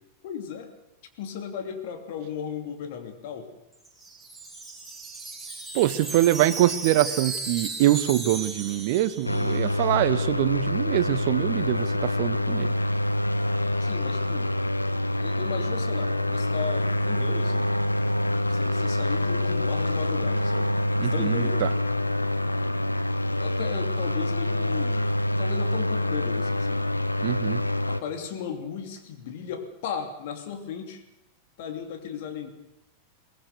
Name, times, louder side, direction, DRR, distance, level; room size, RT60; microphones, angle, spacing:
voice 1, 0.2-0.7 1.2-3.5 13.8-14.5 15.2-17.7 18.4-20.7 21.1-21.6 23.3-25.0 25.4-26.8 27.9-31.0 31.6-32.5, left 7 dB, 50° left, 6 dB, 2.9 m, -36 dB
Wind chime, 3.7-9.7, right 3 dB, ahead, 4.7 m, -36 dB
voice 2, 5.7-12.7 21.0-21.7 27.2-27.6, right 14 dB, 50° right, 15 dB, 1.0 m, -24 dB
sound 1, 9.3-28.0, left 1 dB, 85° left, 1.0 m, -26 dB
22.0 x 19.0 x 6.7 m, 0.86 s
figure-of-eight pair, 90°, 0 cm